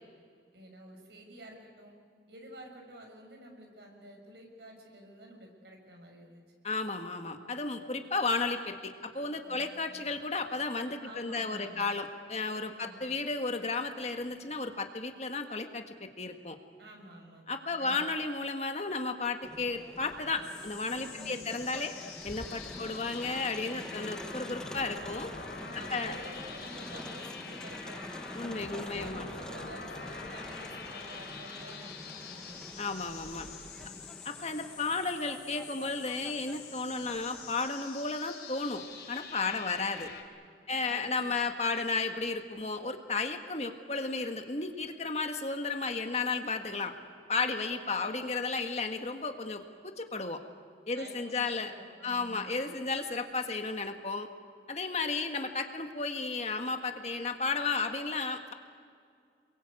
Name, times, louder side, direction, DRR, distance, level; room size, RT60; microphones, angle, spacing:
voice 1, 0.5-2.0 2.3-6.4 9.4-10.0 11.0-11.9 12.7-13.1 16.8-17.4 17.7-18.0 21.1-21.5 22.6-23.0 25.6-28.1 28.6-32.6 33.7-34.2 39.3-39.9 40.7-41.3 50.9-52.7, right 1 dB, 75° right, 2 dB, 6.1 m, -50 dB
voice 2, 6.6-16.6 17.5-21.9 22.2-25.3 25.7-26.2 28.3-29.3 32.8-33.5 34.2-40.1 40.7-46.9 47.3-50.4 50.9-51.7 52.0-54.3 54.7-58.5, left 3 dB, 40° left, 6 dB, 1.7 m, -33 dB
Crowd, 19.4-37.7, equal, 5° left, 0.7 m, -47 dB
sound 1, 20.4-40.2, left 5 dB, 65° left, 3.6 m, -46 dB
28.5 x 22.5 x 8.4 m, 2.2 s
head